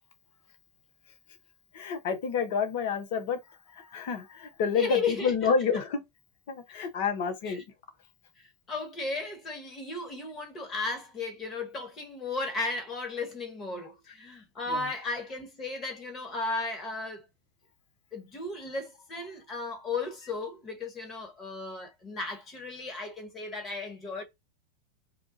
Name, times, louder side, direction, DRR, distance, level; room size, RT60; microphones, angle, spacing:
voice 1, 1.7-3.4 3.7-6.0 6.5-7.6 14.7-14.9, left 6 dB, 60° left, 0.9 m, -29 dB
voice 2, 4.7-5.3 7.4-7.6 8.7-17.3 18.1-24.2, left 3 dB, 30° left, 1.6 m, -35 dB
4.4 x 2.4 x 2.6 m
hypercardioid pair, 105°, 0 cm